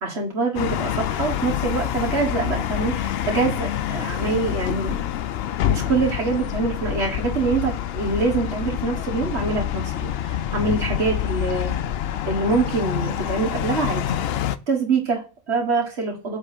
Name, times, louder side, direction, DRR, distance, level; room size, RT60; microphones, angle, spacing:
voice 1, 0.0-5.1 5.7-11.7 12.3-14.0 14.7-16.4, right 4 dB, 75° right, 1 dB, 1.8 m, -25 dB
sound 1, 0.5-14.6, left 11 dB, 70° left, 0.8 m, -26 dB
8.2 x 3.8 x 5.0 m, 0.33 s
omnidirectional pair, 1.1 m